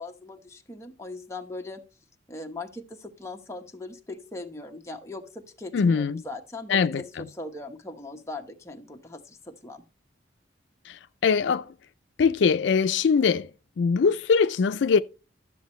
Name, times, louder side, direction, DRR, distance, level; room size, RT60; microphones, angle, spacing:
voice 1, 0.0-1.8 2.3-9.8, left 2 dB, 15° left, 1.1 m, -39 dB
voice 2, 5.7-6.2 6.7-7.3 10.9-11.7 12.2-13.5 13.8-15.0, left 5 dB, 75° left, 0.4 m, -22 dB
12.5 x 7.3 x 3.1 m
head